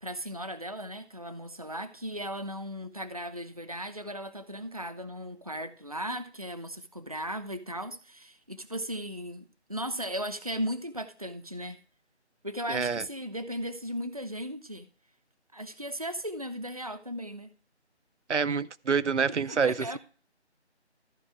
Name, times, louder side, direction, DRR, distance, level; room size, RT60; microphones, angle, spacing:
voice 1, 0.0-11.8 12.4-14.9 15.5-17.5 19.3-20.0, equal, 35° right, 0.6 m, -37 dB
voice 2, 12.7-13.0 18.3-19.9, right 5 dB, 85° right, 0.7 m, -27 dB
14.0 x 4.8 x 4.5 m
figure-of-eight pair, 175°, 34 cm